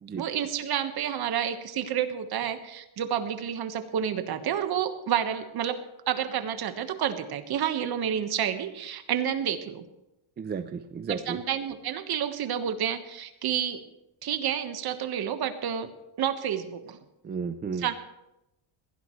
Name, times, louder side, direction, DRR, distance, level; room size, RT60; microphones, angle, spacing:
voice 1, 0.2-9.8 11.1-13.8 14.2-15.9 16.2-17.0 17.8-17.9, right 9 dB, 50° right, 8 dB, 1.4 m, -29 dB
voice 2, 10.4-11.4 17.2-17.9, right 6 dB, 20° right, 9 dB, 0.4 m, -33 dB
21.5 x 15.5 x 3.2 m, 0.90 s
cardioid pair, 145°, 49 cm